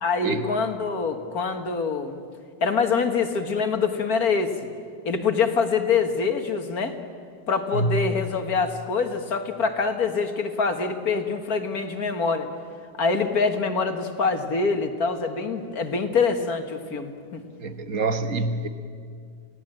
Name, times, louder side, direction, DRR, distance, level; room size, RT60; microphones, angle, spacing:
voice 1, 0.0-2.2 2.6-4.5 5.1-7.0 7.5-12.5 13.0-17.4, left 5 dB, 55° left, 7 dB, 2.0 m, -25 dB
voice 2, 17.6-18.7, right 2 dB, 50° right, 8 dB, 1.6 m, -26 dB
29.0 x 17.0 x 8.9 m, 2.2 s
omnidirectional pair, 1.9 m